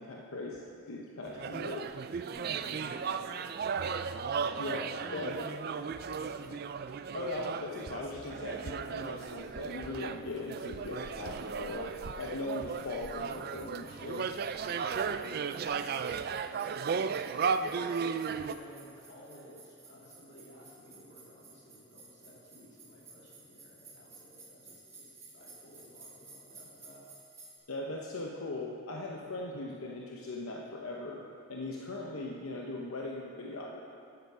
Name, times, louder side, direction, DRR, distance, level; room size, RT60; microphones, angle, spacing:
voice 1, 0.0-2.0 4.5-4.9 5.1-5.5 7.1-14.3 27.7-33.8, left 2 dB, 85° left, -1 dB, 0.8 m, -39 dB
sound 1, 1.2-18.5, right 6 dB, 45° right, 0.3 m, -35 dB
voice 2, 2.2-3.7 4.6-6.6 14.6-17.8 18.4-27.1, equal, 55° left, -6 dB, 2.8 m, -53 dB
sound 2, 9.4-27.6, right 3 dB, 15° right, 2.6 m, -57 dB
9.6 x 8.2 x 6.0 m, 2.8 s
head